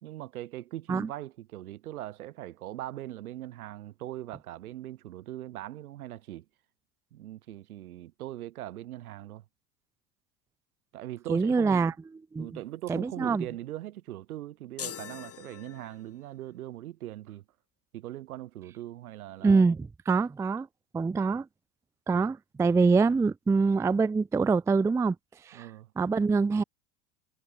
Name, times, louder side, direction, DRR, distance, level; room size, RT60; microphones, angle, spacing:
voice 1, 0.0-6.5 7.1-9.4 10.9-11.9 12.4-17.4 17.9-19.6 25.5-25.9, right 14 dB, 70° right, 2.1 m, -40 dB
voice 2, 11.3-12.5 12.9-13.5 19.4-20.7 20.9-21.5 22.1-25.2 25.4-25.7 26.0-26.6, right 4 dB, 5° right, 0.4 m, -25 dB
sound 1, 14.8-16.3, left 9 dB, 30° left, 5.7 m, -42 dB
figure-of-eight pair, 80°, 45 cm